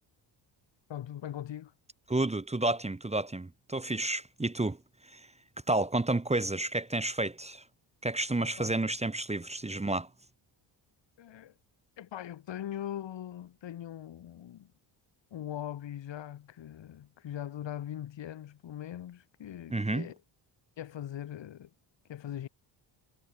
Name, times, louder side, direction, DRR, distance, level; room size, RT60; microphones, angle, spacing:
voice 1, 0.9-1.7 8.4-8.7 11.2-11.5 12.0-14.7 15.3-20.2 20.8-21.7 22.1-22.5, left 11 dB, 65° left, 2.8 m, -41 dB
voice 2, 2.1-5.3 5.7-7.6 8.0-10.1 19.7-20.1, right 2 dB, 15° right, 1.6 m, -31 dB
cardioid pair, 80°, 48 cm